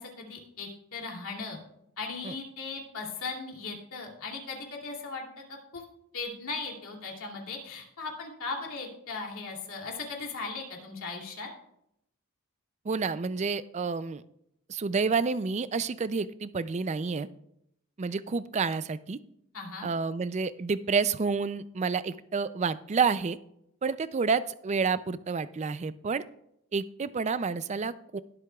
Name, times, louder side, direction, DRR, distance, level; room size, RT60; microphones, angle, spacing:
voice 1, 0.0-1.6 2.0-5.3 5.7-5.8 6.1-11.5 19.5-19.9, left 4 dB, 65° left, 1 dB, 2.7 m, -38 dB
voice 2, 12.9-14.2 14.7-17.3 18.0-19.2 19.8-23.4 23.8-26.2 26.7-28.2, right 5 dB, 30° right, 15 dB, 0.4 m, -29 dB
20.5 x 7.8 x 2.3 m, 0.76 s
head